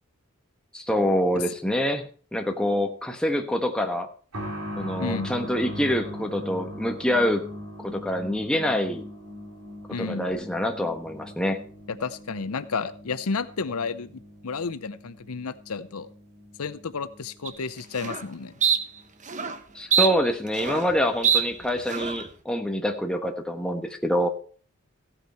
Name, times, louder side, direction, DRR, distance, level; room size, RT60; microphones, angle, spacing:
voice 1, 0.7-4.1 4.8-7.4 7.8-9.1 10.0-11.6 19.7-24.3, equal, 5° left, 4 dB, 1.3 m, -26 dB
sound 1, 4.3-18.8 19.0-19.1 20.1-20.2, equal, 85° right, 3.3 m, -40 dB
voice 2, 5.0-5.3 9.9-10.3 11.9-14.1 14.4-16.1 16.6-18.5, left 4 dB, 75° left, 13 dB, 0.7 m, -31 dB
sound 2, 17.5-17.6 18.0-18.2 18.6-18.8 19.3-19.5 19.9-20.9 21.2-21.4 21.9-22.2, right 7 dB, 35° right, 1.0 m, -23 dB
15.0 x 8.9 x 4.4 m, 0.41 s
head